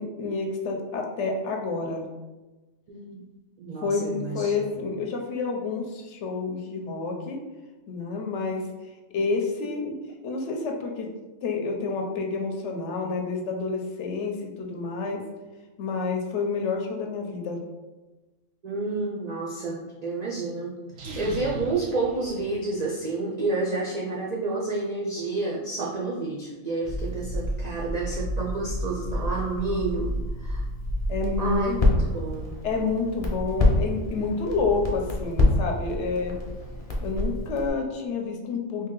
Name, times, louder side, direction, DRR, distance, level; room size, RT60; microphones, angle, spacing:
voice 1, 0.0-2.0 3.8-7.4 7.9-8.6 9.1-9.9 10.2-11.1 11.4-15.2 15.8-17.6 31.1-31.8 32.6-36.4 37.0-38.9, left 4 dB, 70° left, 1 dB, 0.9 m, -29 dB
voice 2, 2.9-3.2 3.6-4.8 18.6-30.6 31.4-32.6, right 3 dB, 65° right, -4 dB, 0.4 m, -30 dB
sound 1, 20.9-23.0, right 2 dB, 85° right, 1.0 m, -38 dB
Crackle, 26.8-37.7, left 1 dB, 40° left, 0.5 m, -27 dB
3.1 x 2.7 x 3.7 m, 1.1 s
omnidirectional pair, 1.3 m